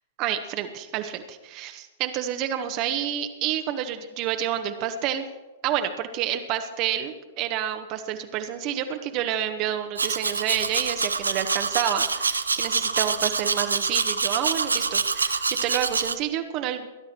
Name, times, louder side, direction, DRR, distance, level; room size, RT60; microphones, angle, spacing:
voice 1, 0.2-5.3 5.6-16.9, right 10 dB, 40° right, 7 dB, 1.2 m, -29 dB
Domestic sounds home sounds, 10.0-16.2, right 4 dB, 75° right, 0.8 m, -26 dB
20.5 x 11.5 x 4.5 m, 1.1 s
figure-of-eight pair, 100°, 0 cm